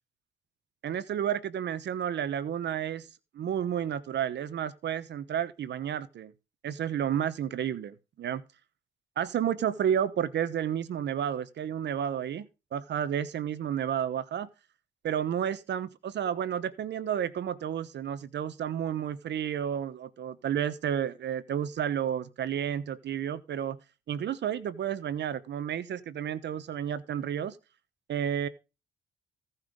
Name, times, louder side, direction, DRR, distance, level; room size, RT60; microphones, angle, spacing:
voice 1, 0.8-3.1 3.3-6.3 6.6-8.4 9.2-14.5 15.0-23.8 24.1-27.6 28.1-28.5, right 9 dB, 60° right, 1.1 m, -31 dB
16.5 x 5.8 x 5.2 m
cardioid pair, 90°, 20 cm